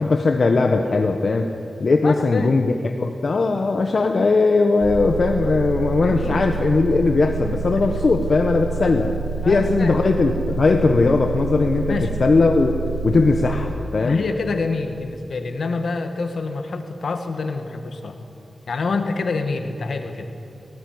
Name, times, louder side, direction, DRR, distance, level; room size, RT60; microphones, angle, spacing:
voice 1, 0.0-1.5 1.8-9.1 9.4-12.7 13.0-14.2, left 3 dB, 60° left, 4 dB, 1.2 m, -19 dB
voice 2, 2.0-2.6 6.0-6.4 8.8-9.0 9.4-10.0 11.9-12.1 14.0-18.2 18.7-20.3, left 3 dB, 75° left, 6 dB, 1.9 m, -27 dB
sound 1, 4.8-13.7, right 5 dB, 60° right, 5.2 m, -28 dB
18.5 x 18.0 x 9.6 m, 2.6 s
wide cardioid pair, 80°, 0 cm